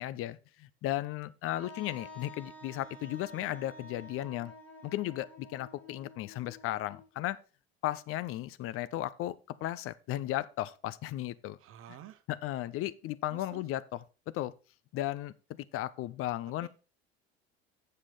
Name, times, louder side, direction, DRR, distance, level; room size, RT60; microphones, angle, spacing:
voice 1, 0.0-4.5 4.8-7.4 7.8-11.6 12.3-13.8 14.3-14.5 14.9-16.7, left 14 dB, 45° left, 0.6 m, -35 dB
Wind instrument woodwind instrument, 1.5-7.3, left 2 dB, 5° left, 3.7 m, -50 dB
voice 2, 11.6-12.2 13.3-13.7 16.6-16.7, right 10 dB, 45° right, 1.1 m, -50 dB
7.4 x 6.6 x 5.0 m
hypercardioid pair, 70°, 32 cm